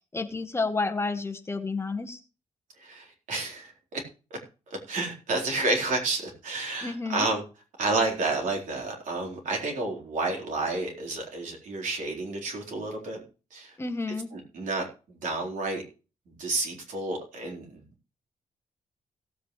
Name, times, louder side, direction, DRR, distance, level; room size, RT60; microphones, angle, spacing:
voice 1, 0.1-2.2 6.8-7.3 13.8-14.3, left 3 dB, 20° left, 7 dB, 1.1 m, -30 dB
voice 2, 2.8-4.0 4.9-7.4 7.8-13.2 13.5-13.7 14.3-15.8 16.3-17.8, right 2 dB, 80° right, 1 dB, 4.1 m, -30 dB
17.5 x 8.4 x 3.2 m, 0.33 s
wide cardioid pair, 135°, 13 cm